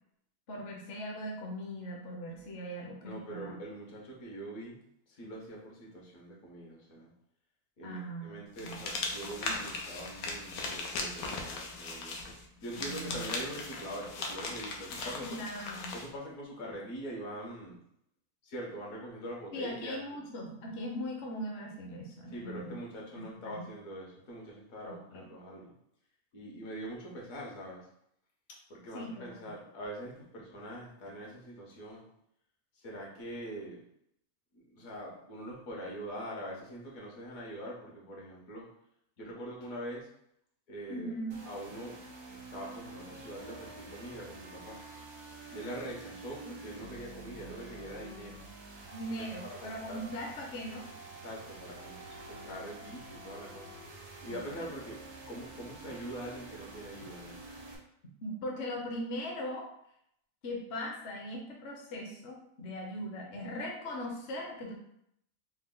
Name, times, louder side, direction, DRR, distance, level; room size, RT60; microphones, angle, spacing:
voice 1, 0.5-3.6 7.8-8.8 12.8-13.2 14.9-15.9 19.5-22.8 23.1-23.7 24.9-25.3 28.9-29.4 40.9-41.4 48.9-50.8 54.3-54.4 58.2-59.7 60.4-64.7, equal, 55° left, -1 dB, 0.8 m, -40 dB
voice 2, 3.0-4.8 5.1-7.1 7.8-12.3 12.6-15.4 15.9-17.8 18.4-20.2 22.3-25.7 26.3-27.9 28.7-32.0 32.7-33.8 34.5-38.7 39.2-40.1 40.7-41.2 41.4-42.0 42.3-44.8 45.5-48.4 49.4-50.0 51.2-53.7 54.2-55.0 55.3-57.4, right 1 dB, 70° left, -2 dB, 1.4 m, -43 dB
sound 1, 8.6-16.1, left 3 dB, 90° left, 1.2 m, -38 dB
sound 2, 41.3-57.8, right 2 dB, 85° right, 1.4 m, -48 dB
4.2 x 2.2 x 3.7 m, 0.72 s
omnidirectional pair, 1.6 m